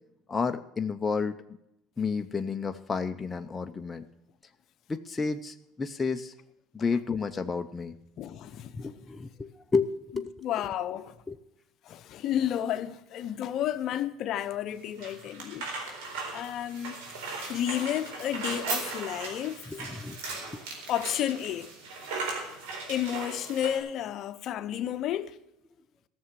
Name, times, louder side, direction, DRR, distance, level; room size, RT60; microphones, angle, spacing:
voice 1, 0.3-1.3 2.0-4.1 4.9-6.3 6.7-8.0 8.8-10.3 11.3-11.4 19.7-20.2 20.5-20.6, left 4 dB, 20° left, 0.6 m, -31 dB
voice 2, 8.2-8.9 10.4-11.1 11.9-15.7 16.3-16.9 17.5-19.6 20.9-21.7 22.9-25.4, left 11 dB, 50° left, 0.8 m, -31 dB
sound 1, 14.7-23.8, right 3 dB, 85° right, 4.2 m, -37 dB
15.0 x 6.9 x 7.4 m
cardioid pair, 125°, 0 cm